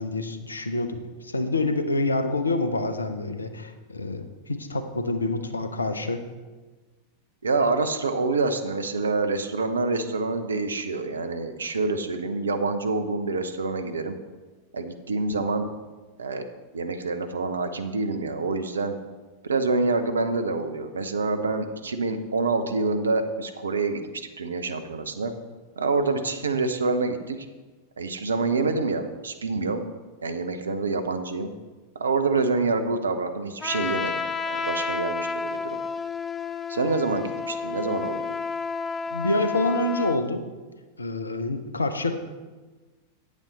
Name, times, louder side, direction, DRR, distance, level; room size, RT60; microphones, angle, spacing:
voice 1, 0.0-6.2 39.1-40.4 41.0-42.2, left 2 dB, 75° left, 8 dB, 0.8 m, -27 dB
voice 2, 7.4-14.2 14.7-15.7 16.2-16.4 16.7-19.0 19.4-25.3 25.8-27.4 28.0-29.8 30.2-31.5 31.9-35.8 36.7-38.4, right 3 dB, 70° right, 8 dB, 0.8 m, -27 dB
Trumpet, 33.6-40.2, left 4 dB, 15° left, 0.5 m, -31 dB
8.8 x 8.3 x 4.1 m, 1.3 s
figure-of-eight pair, 90°, 0 cm